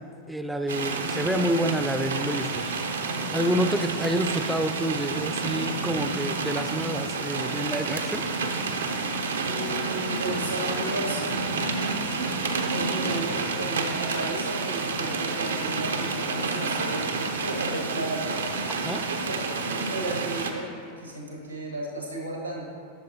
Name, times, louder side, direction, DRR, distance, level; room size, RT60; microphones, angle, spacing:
voice 1, 0.3-2.7 3.3-8.3 18.8-19.0, right 1 dB, 5° right, 7 dB, 0.4 m, -28 dB
sound 1, 0.7-20.5, right 4 dB, 70° right, 0.6 m, -29 dB
voice 2, 9.4-18.5 19.2-22.7, right 1 dB, 90° right, -2 dB, 1.5 m, -34 dB
11.5 x 6.5 x 2.8 m, 2.3 s
figure-of-eight pair, 90°, 0 cm